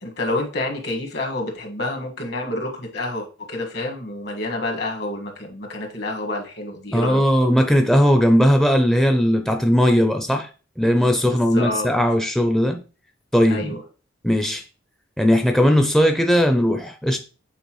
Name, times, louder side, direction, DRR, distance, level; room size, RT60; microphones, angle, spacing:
voice 1, 0.0-7.2 11.5-11.9 13.5-13.8, left 1 dB, 60° left, 1.6 m, -28 dB
voice 2, 6.9-10.5 10.8-12.8 13.3-13.7 14.2-14.6 15.2-17.2, equal, ahead, 0.5 m, -18 dB
8.0 x 4.3 x 3.1 m
head